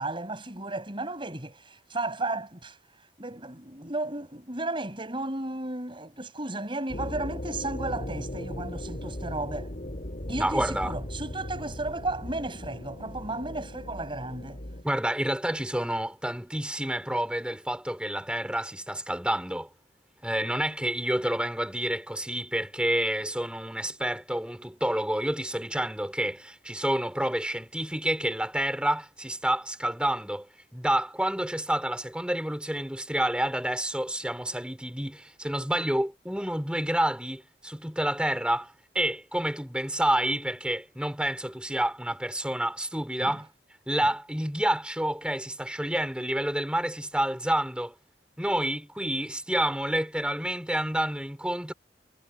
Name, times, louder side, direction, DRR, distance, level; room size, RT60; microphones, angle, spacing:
voice 1, 0.0-2.8 3.2-9.7 10.3-14.6 43.2-43.4, right 2 dB, 30° right, 6.4 m, -34 dB
sound 1, 6.9-14.8, left 1 dB, 50° left, 2.3 m, -37 dB
voice 2, 10.4-10.9 14.8-19.7 20.2-30.5 30.7-43.5 43.9-47.9 48.4-51.7, right 1 dB, 5° right, 4.5 m, -29 dB
head